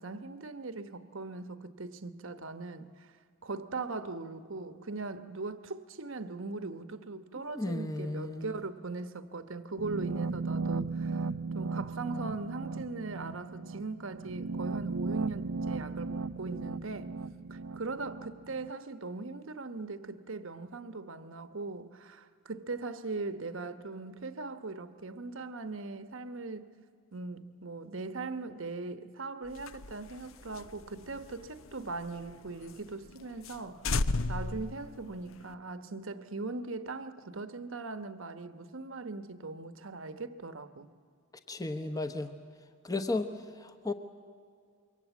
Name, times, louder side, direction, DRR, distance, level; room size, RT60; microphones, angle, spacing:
voice 1, 0.0-3.1 3.4-11.3 11.5-17.2 17.5-26.8 27.1-33.9 34.3-40.9, right 3 dB, 65° right, 1.1 m, -40 dB
voice 2, 7.5-8.6 41.5-42.3 42.8-43.9, left 2 dB, 15° left, 1.1 m, -34 dB
sound 1, 9.8-18.7, right 3 dB, 80° right, 0.6 m, -36 dB
sound 2, 29.5-32.3 32.7-32.8 33.1-33.2 33.4-33.6 33.8-35.5, left 3 dB, 70° left, 0.8 m, -34 dB
26.0 x 23.5 x 8.4 m
head